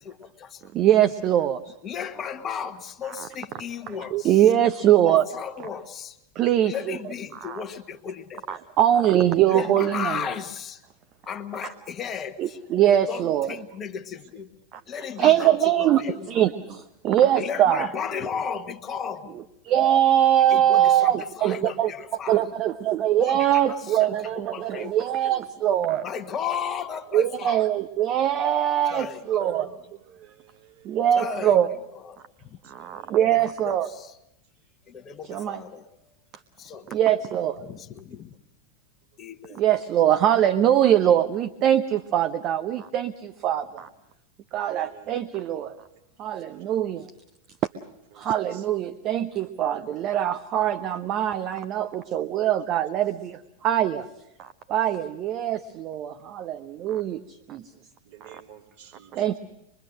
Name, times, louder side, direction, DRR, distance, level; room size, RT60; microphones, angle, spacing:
voice 1, 0.0-0.6 1.8-4.4 5.0-6.2 6.6-8.4 9.5-10.8 11.3-12.6 13.1-14.5 14.9-16.3 17.4-19.4 20.5-21.1 21.4-22.4 23.2-24.1 24.3-24.9 26.0-27.6 28.9-29.8 31.1-31.6 32.0-32.2 33.3-34.1 34.9-35.9 36.6-37.0 37.6-38.3 39.2-39.6, left 7 dB, 25° left, 7 dB, 1.3 m, -35 dB
voice 2, 0.7-1.7 3.2-3.3 3.9-5.3 6.3-7.0 7.4-7.6 8.5-10.3 12.4-13.5 14.7-14.8 15.2-17.9 19.3-21.9 22.3-26.0 27.1-29.7 30.8-31.7 32.7-33.9 35.3-35.6 36.9-37.6 39.5-43.9 44.5-45.8 46.2-47.1 48.1-54.1 54.4-57.7 59.1-59.4, right 11 dB, 35° right, 10 dB, 0.8 m, -22 dB
voice 3, 30.2-31.0 32.6-33.2 44.6-45.2 46.5-46.6 48.1-48.2 48.5-48.6 57.0-57.2 58.1-59.1, right 10 dB, 55° right, -1 dB, 3.5 m, -52 dB
24.5 x 23.0 x 6.4 m, 0.84 s
figure-of-eight pair, 90°, 0 cm